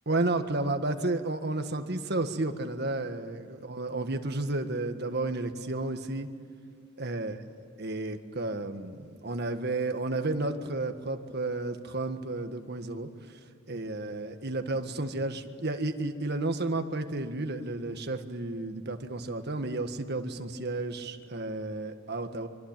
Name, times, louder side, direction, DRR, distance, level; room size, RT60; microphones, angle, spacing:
voice 1, 0.1-6.3 7.0-7.3 7.8-13.4 13.7-22.5, right 2 dB, 55° right, 7 dB, 1.7 m, -32 dB
25.5 x 24.5 x 9.1 m, 2.2 s
head